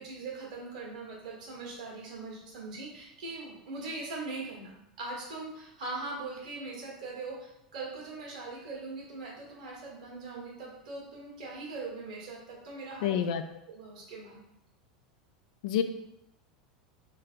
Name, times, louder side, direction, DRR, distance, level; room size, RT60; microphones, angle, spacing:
voice 1, 0.0-13.2 13.7-14.4, right 3 dB, 75° right, -3 dB, 1.2 m, -41 dB
voice 2, 13.0-13.4 15.6-15.8, left 9 dB, 65° left, 8 dB, 0.3 m, -27 dB
3.4 x 3.3 x 2.4 m, 0.82 s
hypercardioid pair, 85°, 4 cm